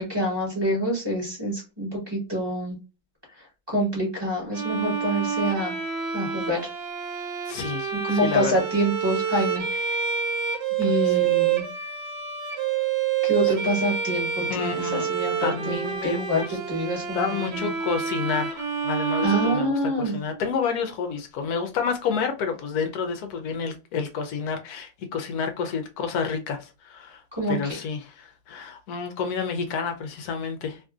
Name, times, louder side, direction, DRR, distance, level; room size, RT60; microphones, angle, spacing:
voice 1, 0.0-2.8 3.7-5.8 6.1-6.6 7.9-10.0 10.8-11.6 13.2-17.7 19.2-20.2 27.4-27.6, equal, 15° right, 1.3 m, -26 dB
Bowed string instrument, 4.5-20.4, right 7 dB, 90° right, 1.3 m, -28 dB
voice 2, 7.5-8.6 10.8-11.3 13.4-13.7 14.5-15.1 15.4-16.6 17.1-27.2 27.5-30.8, left 6 dB, 80° left, 1.1 m, -30 dB
2.9 x 2.5 x 2.3 m
omnidirectional pair, 1.7 m